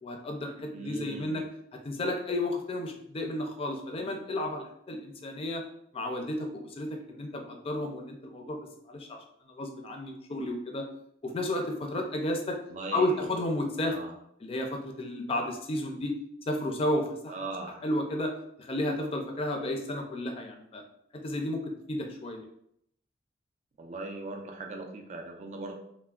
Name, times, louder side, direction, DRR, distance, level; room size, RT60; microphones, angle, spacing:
voice 1, 0.0-1.4 1.7-5.6 5.9-8.6 8.9-9.2 9.5-10.8 11.2-12.6 12.9-13.9 14.4-16.1 16.5-17.3 17.8-18.3 18.6-20.8 21.2-22.4, left 1 dB, 35° left, 3 dB, 0.4 m, -32 dB
voice 2, 0.7-1.4 12.7-13.4 13.8-14.1 17.3-17.8 23.8-25.8, right 2 dB, 40° right, 2 dB, 0.4 m, -39 dB
3.3 x 2.1 x 2.3 m, 0.72 s
head